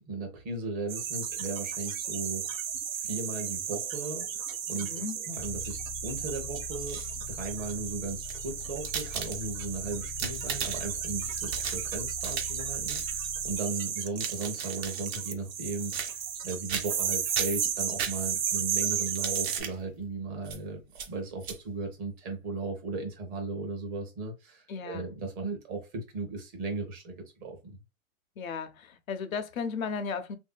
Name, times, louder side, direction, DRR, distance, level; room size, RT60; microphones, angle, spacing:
voice 1, 0.0-2.6 2.9-4.9 5.2-7.0 7.3-15.9 16.4-20.8 21.1-27.8, right 3 dB, 25° right, 0.8 m, -36 dB
sound 1, 0.9-19.6, right 8 dB, 75° right, 0.8 m, -34 dB
voice 2, 4.7-5.2 24.7-25.1 28.4-30.4, left 5 dB, 85° left, 0.7 m, -35 dB
sound 2, 5.4-13.6, left 7 dB, 20° left, 0.4 m, -43 dB
sound 3, 6.6-7.3 8.1-9.7 10.0-11.0 11.3-12.6 12.9-13.1 14.0-15.3 15.9-16.4 16.7-17.1 17.3-18.6 19.1-19.8 20.4-20.6 20.9-21.1 21.4-21.6, right 7 dB, 50° right, 1.0 m, -37 dB
3.1 x 2.7 x 2.2 m
hypercardioid pair, 140°, 40 cm